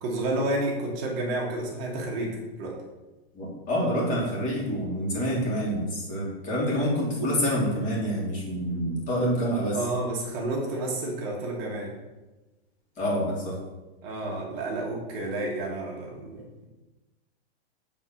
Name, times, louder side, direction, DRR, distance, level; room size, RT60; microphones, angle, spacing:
voice 1, 0.0-2.7 9.7-11.9 14.0-16.6, right 2 dB, 35° right, -1 dB, 1.6 m, -30 dB
voice 2, 3.3-9.8 13.0-13.6, equal, 25° left, -4 dB, 2.3 m, -27 dB
7.2 x 3.7 x 5.8 m, 1.1 s
hypercardioid pair, 150°, 32 cm